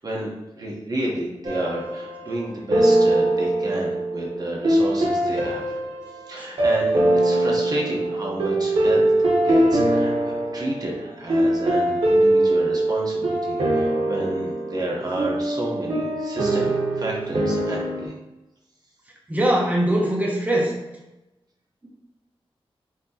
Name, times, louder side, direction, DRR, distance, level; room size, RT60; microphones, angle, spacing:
voice 1, 0.0-5.7 6.3-9.1 9.4-10.1 10.5-18.1, right 1 dB, 40° right, -2 dB, 1.0 m, -30 dB
sound 1, 1.4-2.4 2.7-18.1, right 1 dB, 75° right, 1.0 m, -22 dB
voice 2, 19.3-20.7, right 1 dB, 15° right, -2 dB, 0.8 m, -21 dB
5.9 x 2.9 x 2.8 m, 0.98 s
wide cardioid pair, 120°, 10 cm